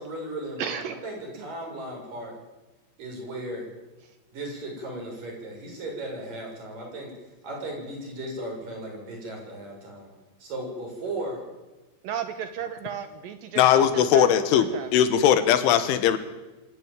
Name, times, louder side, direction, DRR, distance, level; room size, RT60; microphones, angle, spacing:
voice 1, 0.0-2.3 3.0-3.6 4.3-7.1 7.4-10.1 10.4-11.4, right 1 dB, 45° right, 0 dB, 8.1 m, -36 dB
voice 2, 0.6-1.0 1.4-1.5 4.0-4.1 12.0-14.9, right 8 dB, 75° right, 9 dB, 2.1 m, -34 dB
voice 3, 13.6-16.2, left 9 dB, 85° left, 11 dB, 3.9 m, -20 dB
25.5 x 13.0 x 9.2 m, 1.1 s
omnidirectional pair, 5.4 m